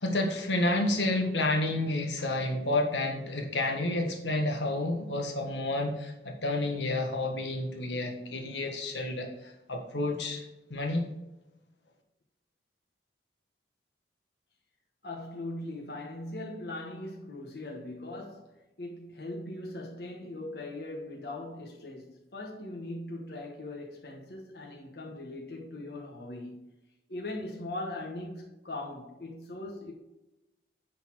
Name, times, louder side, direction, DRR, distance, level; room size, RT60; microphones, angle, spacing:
voice 1, 0.0-10.4 10.7-11.1, left 2 dB, 85° left, 1.4 m, -30 dB
voice 2, 15.0-26.8 27.1-29.9, left 2 dB, 65° left, 1.2 m, -40 dB
9.8 x 4.1 x 4.7 m
head